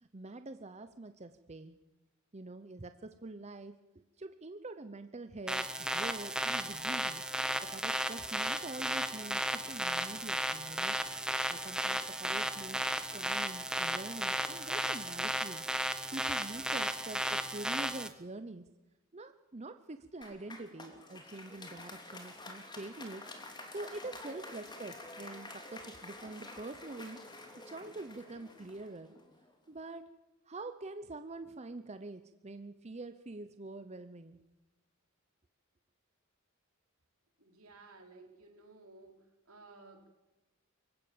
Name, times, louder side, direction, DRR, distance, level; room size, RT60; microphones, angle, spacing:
voice 1, 0.0-1.8 2.3-3.8 4.2-7.2 7.6-11.0 11.5-12.9 13.1-15.6 16.1-18.7 19.1-23.3 23.7-27.2 27.6-29.1 29.7-30.0 30.5-34.4, right 2 dB, 30° right, 10 dB, 0.8 m, -45 dB
sound 1, 5.5-18.1, right 1 dB, 5° right, 1.3 m, -34 dB
Applause, 20.2-29.5, left 2 dB, 20° left, 2.9 m, -49 dB
voice 2, 37.4-39.2 39.5-40.1, right 3 dB, 80° right, 3 dB, 4.7 m, -55 dB
24.0 x 16.0 x 8.8 m, 1.1 s
head